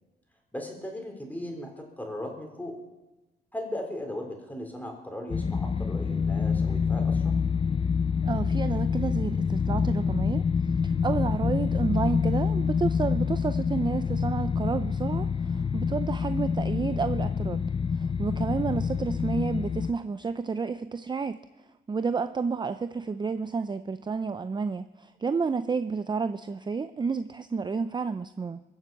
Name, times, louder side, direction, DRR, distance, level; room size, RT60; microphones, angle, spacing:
voice 1, 0.5-2.8 3.5-7.4, left 1 dB, 10° left, 3 dB, 4.2 m, -37 dB
sound 1, 5.3-19.9, left 6 dB, 30° left, 0.6 m, -27 dB
voice 2, 8.2-10.4 10.8-17.6 18.0-21.4 21.9-28.6, right 5 dB, 20° right, 11 dB, 0.5 m, -30 dB
22.5 x 7.6 x 7.7 m, 1.1 s
cardioid pair, 90°, 20 cm